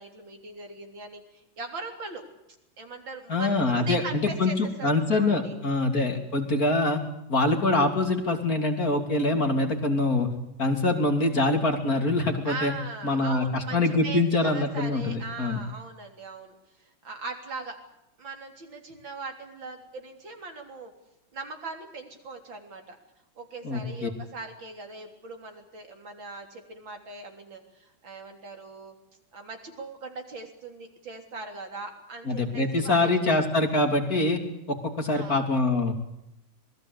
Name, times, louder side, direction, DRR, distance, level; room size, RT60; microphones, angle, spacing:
voice 1, 0.0-2.2 2.8-5.6 12.4-17.8 18.2-20.9 21.3-23.0 23.4-29.0 29.3-33.1 35.1-35.4, right 3 dB, 75° right, 4 dB, 4.2 m, -40 dB
voice 2, 3.3-7.0 7.3-10.3 10.6-12.7 13.0-15.6 23.6-24.1 32.3-34.4 34.7-35.9, left 2 dB, 45° left, 4 dB, 3.5 m, -24 dB
26.5 x 20.5 x 8.2 m, 0.85 s
omnidirectional pair, 2.1 m